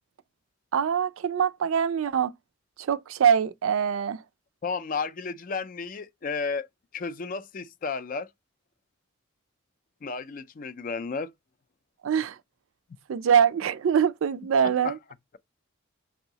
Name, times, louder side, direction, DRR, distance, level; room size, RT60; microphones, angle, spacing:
voice 1, 0.7-2.3 2.9-4.2 12.0-12.4 13.1-15.0, right 7 dB, 70° right, 0.4 m, -23 dB
voice 2, 4.6-6.7 6.9-8.3 10.0-11.3 14.8-15.0, left 4 dB, 40° left, 0.3 m, -32 dB
4.6 x 2.8 x 2.8 m
head